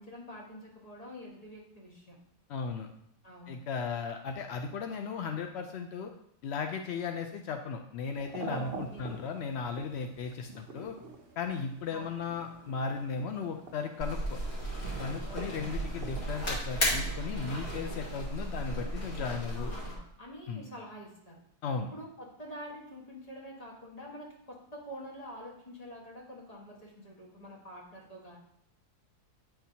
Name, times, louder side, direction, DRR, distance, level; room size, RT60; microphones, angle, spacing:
voice 1, 0.0-2.2 3.2-3.6 8.6-9.1 11.9-12.2 15.2-15.8 19.5-21.4 21.9-28.4, equal, 25° left, -3 dB, 1.5 m, -47 dB
voice 2, 2.5-2.9 3.5-6.1 6.4-11.0 11.4-14.4 15.0-19.7 20.5-20.7 21.6-21.9, left 5 dB, 75° left, 5 dB, 0.6 m, -36 dB
sound 1, 8.0-16.2, right 3 dB, 45° right, 0.9 m, -46 dB
sound 2, 14.0-19.9, equal, 45° left, 2.3 m, -34 dB
8.7 x 5.7 x 2.8 m, 0.74 s
omnidirectional pair, 1.7 m